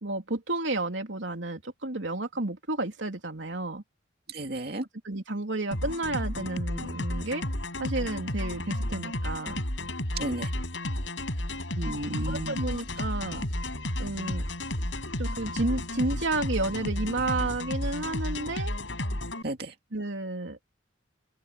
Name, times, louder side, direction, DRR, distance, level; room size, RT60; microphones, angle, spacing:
voice 1, 0.0-3.8 5.0-7.4 7.8-9.6 12.3-13.5 14.0-14.4 15.2-18.7 19.9-20.6, right 2 dB, 80° right, 3.1 m, -31 dB
voice 2, 4.3-4.8 10.2-10.5 11.8-12.6 19.4-19.7, right 1 dB, 55° right, 2.5 m, -33 dB
sound 1, 5.7-19.4, left 1 dB, 80° left, 7.1 m, -32 dB
sound 2, 12.2-18.2, equal, 50° left, 3.6 m, -45 dB
head